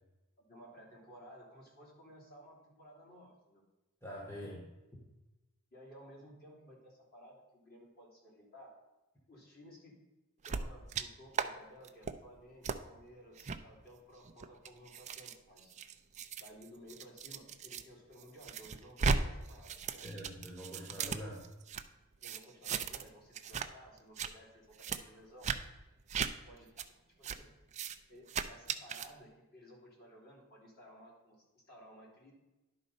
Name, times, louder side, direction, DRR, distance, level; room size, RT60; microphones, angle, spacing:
voice 1, 0.4-3.6 5.7-8.7 9.3-10.0 10.4-15.7 16.4-20.1 22.2-25.5 26.5-26.7 27.2-27.5 28.1-32.3, equal, 45° left, -3 dB, 2.9 m, -56 dB
voice 2, 4.0-4.7 20.0-21.4, equal, 10° left, -4 dB, 1.3 m, -44 dB
sound 1, 10.4-11.0 11.3-11.5 11.8-12.1 12.6-12.8 13.4-13.6 14.2-17.8 18.2-19.2 19.5-21.8 22.2-23.1 23.3-23.7 24.0-24.3 24.8-25.0 25.4-25.6 26.1-26.3 26.8-26.9 27.2-27.4 27.7-28.0 28.3-29.1, right 5 dB, 30° right, 0.4 m, -36 dB
11.0 x 4.1 x 5.3 m, 1.0 s
head